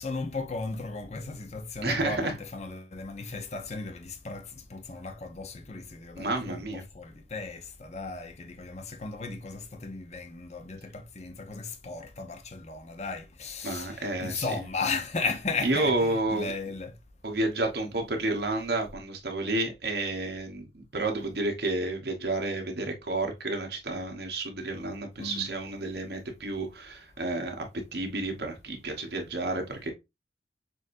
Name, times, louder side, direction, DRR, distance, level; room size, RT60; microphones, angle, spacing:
voice 1, 0.0-6.7 6.9-16.9 25.2-25.5, left 3 dB, 35° left, 0.6 m, -36 dB
voice 2, 1.8-2.3 6.2-6.8 13.6-14.5 15.6-16.5 17.2-27.7 27.9-29.9, right 2 dB, 60° right, 1.0 m, -30 dB
6.2 x 2.6 x 2.5 m
head